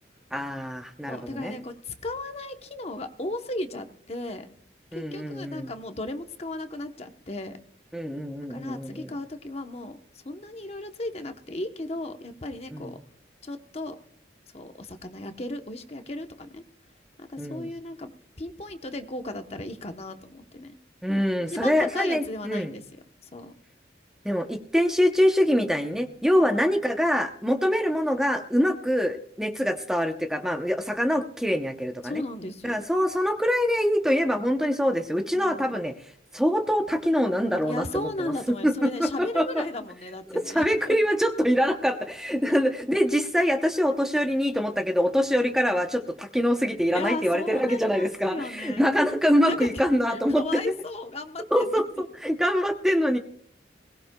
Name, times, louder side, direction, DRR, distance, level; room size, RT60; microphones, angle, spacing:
voice 1, 0.3-1.6 4.9-5.7 7.9-9.1 12.7-12.9 17.4-17.7 21.0-22.7 24.2-32.2 32.6-35.9 36.3-38.3 38.6-39.6 40.3-50.6 51.5-53.2, equal, 5° right, 5 dB, 0.7 m, -24 dB
voice 2, 1.1-4.5 4.9-7.6 8.5-10.0 10.2-13.0 13.4-14.0 14.5-16.6 17.2-18.1 18.4-20.7 21.5-23.0 23.3-23.5 26.4-26.5 32.0-32.8 35.3-35.7 37.7-41.0 46.9-49.1 49.4-49.8 50.1-51.7, left 2 dB, 35° left, 7 dB, 0.9 m, -35 dB
21.0 x 18.0 x 2.3 m, 0.62 s
head